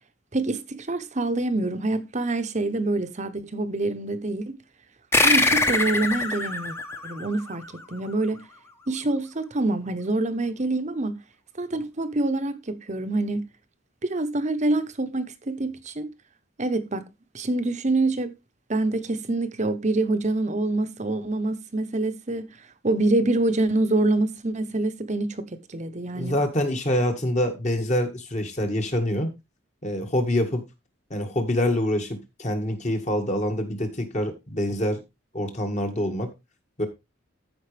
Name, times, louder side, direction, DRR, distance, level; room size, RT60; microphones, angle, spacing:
voice 1, 0.3-4.6 5.2-6.7 7.0-7.6 7.9-8.4 8.9-11.1 11.6-13.4 14.0-16.1 16.6-17.0 17.3-18.3 18.7-22.5 22.8-26.4, right 2 dB, 35° right, 0.9 m, -26 dB
sound 1, 5.1-8.1, left 2 dB, 10° left, 0.9 m, -23 dB
voice 2, 26.2-29.3 29.8-30.6 31.1-35.0 35.3-36.3 36.8-36.9, left 1 dB, 35° left, 1.8 m, -25 dB
14.0 x 5.2 x 3.4 m
head